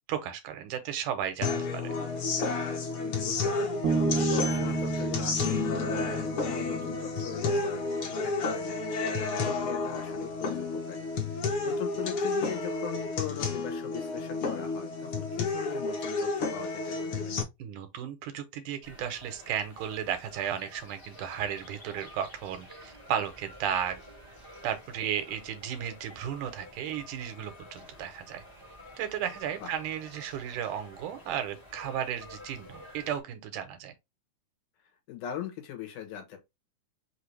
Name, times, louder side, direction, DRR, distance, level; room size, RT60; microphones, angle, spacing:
voice 1, 0.1-1.9 17.6-24.0 24.6-28.4 29.0-33.9, right 9 dB, 85° right, 2.5 m, -34 dB
sound 1, 1.4-17.4, left 3 dB, 55° left, 1.7 m, -31 dB
voice 2, 3.0-6.0 6.3-17.2 29.6-29.7 35.1-36.4, left 10 dB, 80° left, 2.7 m, -40 dB
Bass guitar, 3.8-7.4, right 4 dB, 65° right, 1.2 m, -31 dB
sound 2, 18.8-33.2, equal, 25° left, 0.5 m, -50 dB
5.8 x 2.8 x 3.3 m
omnidirectional pair, 3.5 m